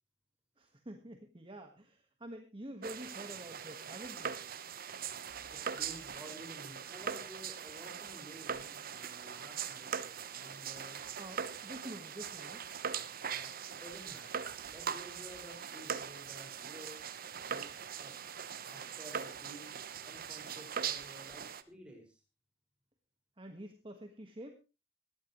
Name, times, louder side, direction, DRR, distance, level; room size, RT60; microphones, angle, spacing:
voice 1, 0.6-4.4 11.2-12.7 23.4-24.5, right 1 dB, 25° right, 5 dB, 1.5 m, -48 dB
sound 1, 2.8-21.6, right 7 dB, 50° right, 1.0 m, -41 dB
voice 2, 5.5-9.9 10.3-11.0 13.2-17.0 17.4-18.1 18.7-19.7 20.0-22.2, equal, 5° right, 1 dB, 5.3 m, -53 dB
19.5 x 14.0 x 3.1 m, 0.30 s
head